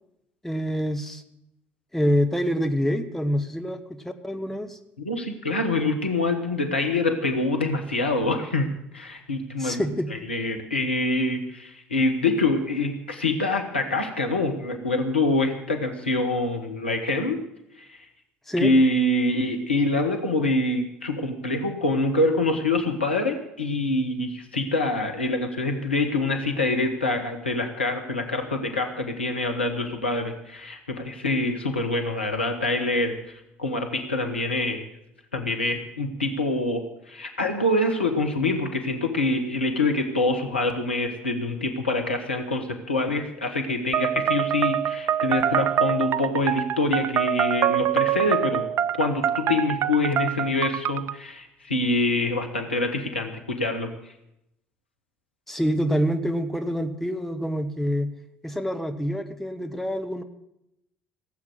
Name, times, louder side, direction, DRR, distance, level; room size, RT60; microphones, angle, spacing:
voice 1, 0.4-1.2 1.9-4.8 9.6-10.1 18.5-18.7 55.5-58.1 58.4-60.2, equal, 5° left, 6 dB, 1.3 m, -26 dB
voice 2, 5.0-9.8 10.1-17.4 17.8-18.0 18.6-34.8 35.3-48.6 49.0-53.9, left 2 dB, 85° left, 4 dB, 1.2 m, -25 dB
sound 1, 43.9-51.1, right 10 dB, 45° right, 0.4 m, -25 dB
16.5 x 8.0 x 8.0 m, 0.82 s
figure-of-eight pair, 55°, 6 cm